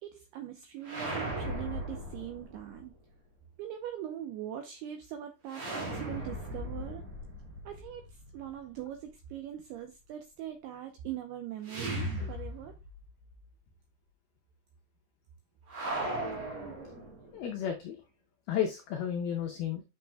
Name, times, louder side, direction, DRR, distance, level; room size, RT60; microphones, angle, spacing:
voice 1, 0.0-2.9 3.6-7.0 7.7-12.7, right 11 dB, 90° right, 5 dB, 2.3 m, -42 dB
sound 1, 0.8-2.8 5.5-8.5 11.6-13.0 13.3-13.4 15.7-17.4, right 1 dB, 40° right, 2.1 m, -37 dB
voice 2, 17.3-18.0 18.5-19.8, left 9 dB, 85° left, 3 dB, 2.2 m, -32 dB
8.9 x 6.1 x 2.2 m, 0.26 s
omnidirectional pair, 5.4 m